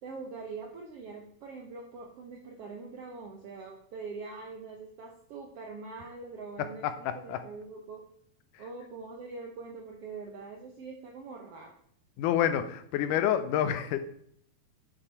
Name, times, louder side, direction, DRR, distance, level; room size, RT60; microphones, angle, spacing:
voice 1, 0.0-8.0 8.6-11.7, right 4 dB, 75° right, 1 dB, 1.3 m, -43 dB
voice 2, 6.8-7.4 12.2-14.0, left 10 dB, 85° left, 10 dB, 2.1 m, -28 dB
6.7 x 5.8 x 4.5 m, 0.65 s
omnidirectional pair, 3.8 m